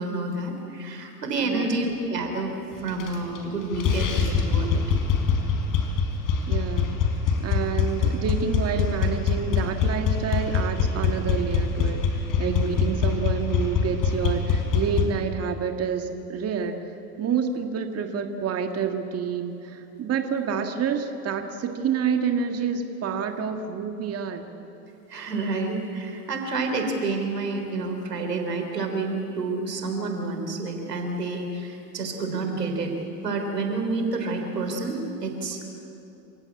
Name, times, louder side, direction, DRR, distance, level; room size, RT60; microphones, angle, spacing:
voice 1, 0.0-4.7 12.5-12.8 25.1-32.9 33.2-35.7, right 3 dB, 90° right, 4 dB, 3.8 m, -29 dB
voice 2, 1.4-1.9 6.5-7.0 7.4-16.8 17.2-24.5, right 6 dB, 30° right, 6 dB, 1.8 m, -28 dB
sound 1, 2.9-3.5 3.7-15.0, left 5 dB, 40° left, 4.6 m, -24 dB
28.0 x 16.5 x 8.6 m, 2.9 s
hypercardioid pair, 90°, 47 cm